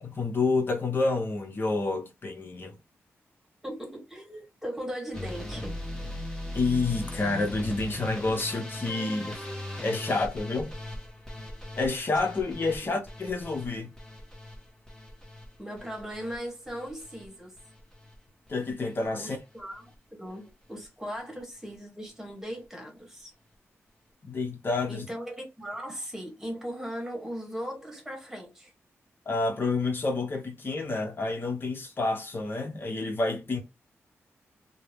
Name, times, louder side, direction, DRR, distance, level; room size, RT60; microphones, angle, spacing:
voice 1, 0.0-2.8 6.5-9.4 9.8-10.7 11.8-13.9 18.5-19.4 24.2-25.1 29.3-33.6, left 3 dB, 45° left, 0.8 m, -29 dB
voice 2, 3.6-5.8 15.6-17.5 19.2-23.3 24.9-28.7, equal, 10° right, 1.2 m, -38 dB
sound 1, 5.1-17.3 17.6-18.1 18.5-19.0 19.4-19.6 19.9-20.0 20.3-20.4, left 1 dB, 10° left, 1.0 m, -39 dB
2.7 x 2.0 x 3.2 m
wide cardioid pair, 95°, 5 cm